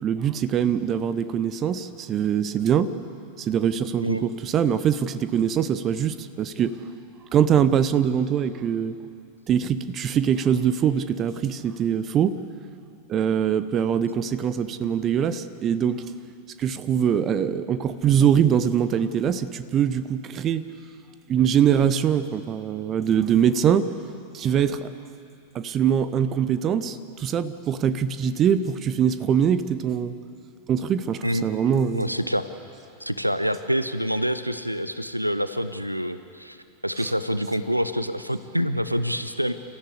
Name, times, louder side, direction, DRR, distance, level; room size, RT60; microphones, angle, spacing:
voice 1, 0.0-2.9 3.4-6.8 7.3-9.0 9.5-12.4 13.1-16.0 16.6-20.6 21.3-23.9 24.3-24.9 25.5-30.2 30.7-32.1, right 8 dB, 30° right, 13 dB, 0.9 m, -23 dB
voice 2, 31.9-32.5 33.0-36.6 36.8-39.5, equal, 90° right, 12 dB, 0.8 m, -26 dB
29.5 x 14.5 x 8.3 m, 2.7 s
figure-of-eight pair, 90°, 0 cm